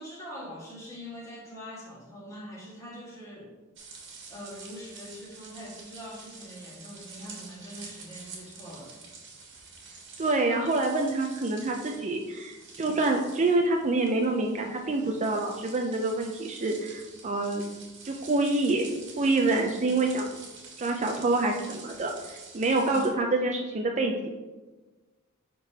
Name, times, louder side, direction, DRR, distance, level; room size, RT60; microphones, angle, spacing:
voice 1, 0.0-3.6 4.3-8.9 22.9-23.1, equal, 15° left, -5 dB, 1.7 m, -43 dB
sound 1, 3.8-23.1, right 4 dB, 55° right, 1.5 m, -48 dB
voice 2, 10.2-17.6 18.0-18.9 19.2-20.3 20.8-24.3, right 2 dB, 35° right, 2 dB, 0.5 m, -27 dB
10.5 x 3.8 x 2.8 m, 1.2 s
head